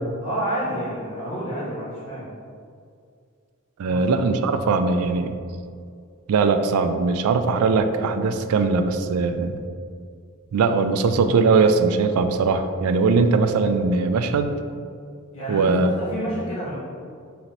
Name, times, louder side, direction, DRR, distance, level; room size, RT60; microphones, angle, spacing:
voice 1, 0.2-2.3 3.8-4.0 15.3-16.8, right 1 dB, 80° left, -9 dB, 1.4 m, -29 dB
voice 2, 3.8-5.3 6.3-9.6 10.5-14.6 15.5-15.9, right 4 dB, 80° right, 8 dB, 0.3 m, -20 dB
3.9 x 2.8 x 4.4 m, 2.3 s
head